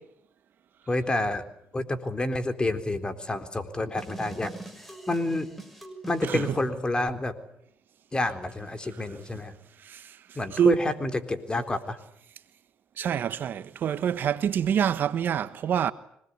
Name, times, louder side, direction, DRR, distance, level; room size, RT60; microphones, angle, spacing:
voice 1, 0.9-1.4 1.7-4.5 5.1-5.5 6.1-7.3 8.1-9.5 10.4-12.0, left 2 dB, 25° left, 3.8 m, -28 dB
sound 1, 4.0-6.6, right 2 dB, 5° left, 6.5 m, -43 dB
voice 2, 6.2-6.6 8.9-9.0 9.8-10.8 13.0-15.9, right 9 dB, 60° right, 1.2 m, -26 dB
26.0 x 20.0 x 9.6 m
supercardioid pair, 65°, 4 cm